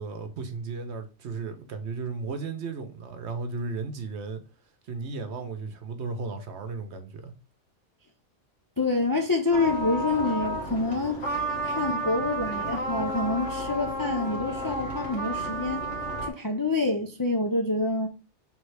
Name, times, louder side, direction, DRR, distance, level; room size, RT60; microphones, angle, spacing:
voice 1, 0.0-4.4 4.9-7.3, right 4 dB, 70° right, 1.0 m, -35 dB
voice 2, 8.8-11.3 11.6-15.9 16.2-18.1, left 3 dB, 35° left, 0.3 m, -27 dB
sound 1, 9.5-16.3, right 1 dB, 75° left, 1.6 m, -31 dB
3.5 x 3.2 x 4.7 m
omnidirectional pair, 1.2 m